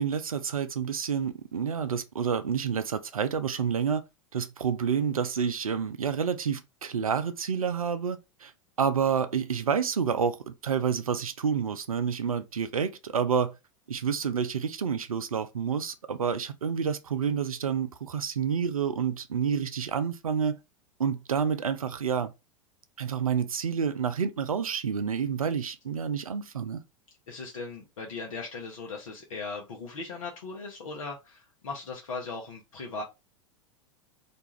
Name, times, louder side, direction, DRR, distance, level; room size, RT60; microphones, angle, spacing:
voice 1, 0.0-4.0 4.3-8.5 8.8-13.5 13.9-20.6 21.0-22.3 23.0-26.8, right 7 dB, 85° right, 0.4 m, -29 dB
voice 2, 27.3-33.0, left 4 dB, 70° left, 0.7 m, -38 dB
2.5 x 2.3 x 3.0 m
figure-of-eight pair, 90°, 18 cm